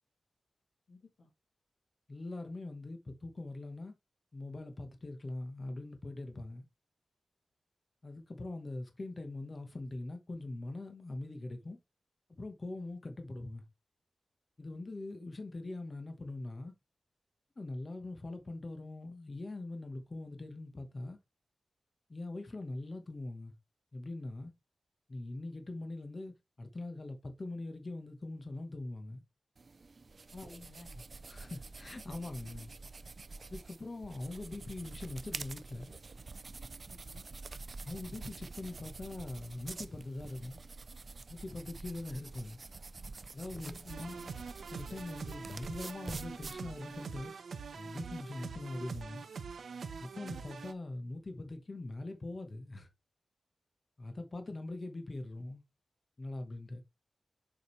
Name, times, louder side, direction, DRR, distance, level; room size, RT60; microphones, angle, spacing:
voice 1, 0.9-1.3 30.4-31.0 36.9-37.3 43.6-43.9 44.1-44.4, left 2 dB, 85° left, 2.1 m, -55 dB
voice 2, 2.1-3.9 4.3-6.7 8.0-11.8 12.3-13.6 14.6-16.7 17.6-21.2 22.1-23.5 23.9-24.5 25.1-29.2 30.3-30.6 30.9-32.7 33.5-35.9 37.8-40.6 41.3-42.6 43.3-44.2 44.7-47.3 47.7-49.2 50.0-52.9 54.0-55.6 56.2-56.8, left 2 dB, 30° left, 1.1 m, -42 dB
sound 1, 29.6-47.1, right 3 dB, 40° right, 0.4 m, -47 dB
sound 2, 43.9-50.7, right 5 dB, 80° right, 0.7 m, -44 dB
6.9 x 5.1 x 3.2 m
wide cardioid pair, 180°, 0 cm